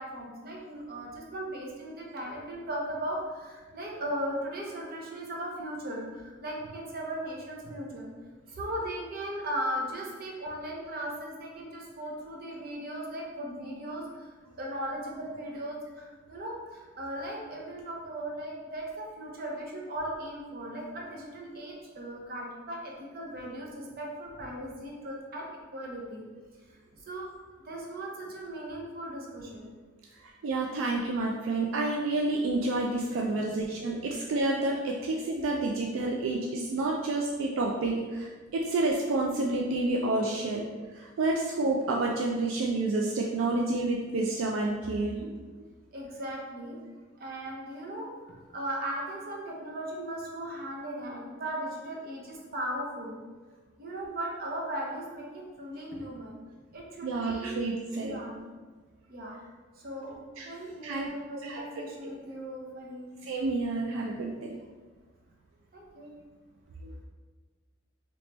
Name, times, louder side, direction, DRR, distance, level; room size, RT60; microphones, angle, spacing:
voice 1, 0.0-8.1 8.6-14.0 14.6-25.5 25.7-26.2 27.1-27.4 27.6-29.7 33.4-33.5 45.9-46.8 47.2-53.2 53.8-56.4 56.7-57.6 58.0-58.4 59.1-59.4 59.8-60.2 60.4-63.2 65.7-66.1, right 1 dB, 45° right, -2 dB, 0.7 m, -37 dB
voice 2, 30.2-40.6 40.9-45.4 57.0-58.2 60.4-60.5 60.8-61.1 61.4-61.6 63.2-64.6 66.8-66.9, right 2 dB, 75° right, 0 dB, 0.3 m, -29 dB
3.3 x 3.0 x 2.9 m, 1.4 s
head